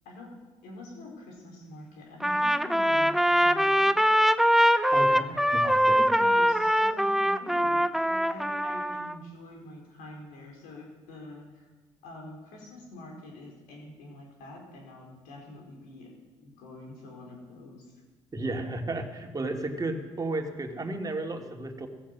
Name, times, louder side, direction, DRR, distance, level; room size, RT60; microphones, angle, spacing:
voice 1, 0.6-4.0 5.1-5.5 5.9-11.7 12.0-18.0, left 1 dB, 70° left, 0 dB, 4.8 m, -45 dB
Trumpet, 2.2-9.1, equal, ahead, 0.7 m, -23 dB
voice 2, 4.9-5.2 5.5-6.3 18.3-21.9, right 2 dB, 25° right, 3 dB, 2.7 m, -33 dB
15.5 x 15.0 x 6.2 m, 1.2 s
hypercardioid pair, 55°, 14 cm